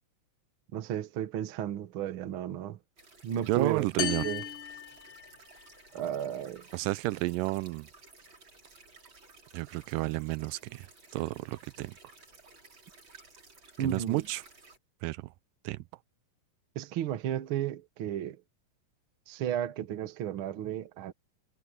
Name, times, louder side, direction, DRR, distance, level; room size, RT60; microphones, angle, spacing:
voice 1, 0.7-2.8 3.2-3.8 4.2-4.4 5.9-6.7 13.8-14.3 16.7-18.4 19.3-21.1, right 10 dB, 55° right, 1.5 m, -33 dB
sound 1, 3.0-14.8, right 3 dB, 35° right, 5.5 m, -56 dB
voice 2, 3.5-4.3 6.7-7.9 9.5-10.9 11.1-11.9 13.8-14.4 15.0-15.3 15.7-15.8, right 20 dB, 85° right, 2.2 m, -31 dB
sound 2, 4.0-5.7, left 8 dB, 55° left, 1.4 m, -36 dB
omnidirectional pair, 3.8 m